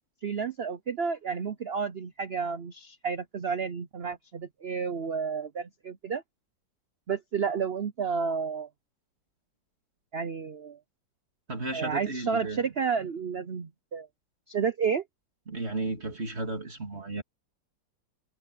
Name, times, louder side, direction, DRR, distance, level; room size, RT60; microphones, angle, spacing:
voice 1, 0.2-6.2 7.1-8.7 10.1-10.8 11.7-14.1 14.5-15.0, right 6 dB, 85° right, 0.5 m, -31 dB
voice 2, 11.5-12.7 15.5-17.2, right 2 dB, 35° right, 3.3 m, -34 dB
omnidirectional pair, 2.1 m